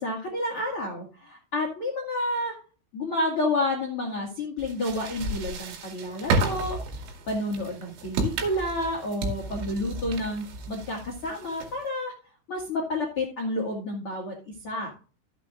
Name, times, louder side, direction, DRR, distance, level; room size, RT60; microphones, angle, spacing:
voice 1, 0.0-2.5 2.9-6.8 7.3-12.1 12.5-14.3 14.6-14.9, left 1 dB, 60° left, 0 dB, 1.4 m, -30 dB
sound 1, 4.6-11.9, right 3 dB, 70° right, 4.5 m, -32 dB
14.0 x 8.2 x 2.5 m, 0.38 s
omnidirectional pair, 5.9 m